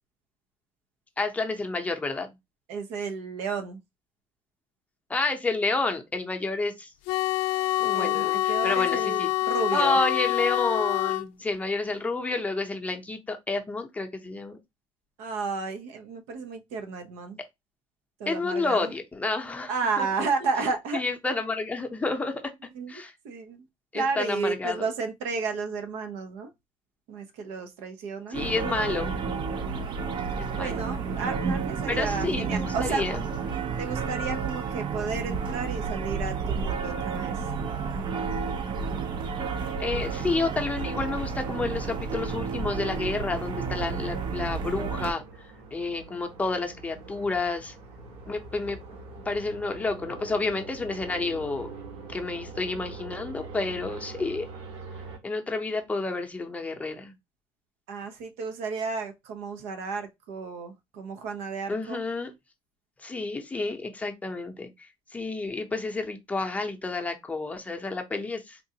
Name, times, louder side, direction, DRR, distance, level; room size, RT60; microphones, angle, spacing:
voice 1, 1.2-2.3 5.1-6.9 7.8-9.3 9.7-14.6 18.3-20.1 20.9-22.4 22.9-23.1 23.9-24.9 28.3-29.1 30.4-30.8 31.9-33.2 39.8-45.2 45.7-47.7 48.3-48.8 49.2-51.7 52.1-54.5 55.2-57.1 61.7-62.3 63.0-68.6, left 3 dB, 15° left, 0.6 m, -30 dB
voice 2, 2.7-3.8 7.9-10.0 15.2-17.4 18.2-18.9 19.7-21.0 22.7-22.9 23.2-23.6 23.9-26.5 27.1-28.4 30.5-33.0 33.8-37.5 57.9-62.0, right 4 dB, 90° right, 0.7 m, -32 dB
sound 1, 7.1-11.3, left 17 dB, 90° left, 0.4 m, -26 dB
sound 2, 28.3-45.1, right 5 dB, 45° right, 0.5 m, -31 dB
sound 3, 43.1-55.2, right 4 dB, 65° right, 1.2 m, -44 dB
3.7 x 2.4 x 2.7 m
cardioid pair, 135°, 11 cm